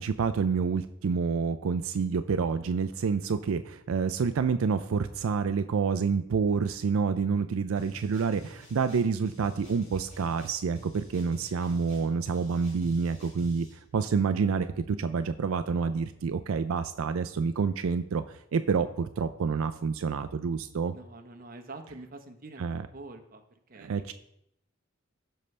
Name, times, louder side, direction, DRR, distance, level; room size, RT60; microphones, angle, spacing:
voice 1, 0.0-13.7 13.9-20.9 22.6-22.9 23.8-24.1, right 5 dB, 85° right, 10 dB, 0.4 m, -28 dB
sound 1, 7.8-13.8, equal, 35° left, 2.9 m, -50 dB
voice 2, 20.9-23.4 23.7-24.1, right 2 dB, 45° right, 6 dB, 0.9 m, -46 dB
15.5 x 5.5 x 3.3 m, 0.77 s
head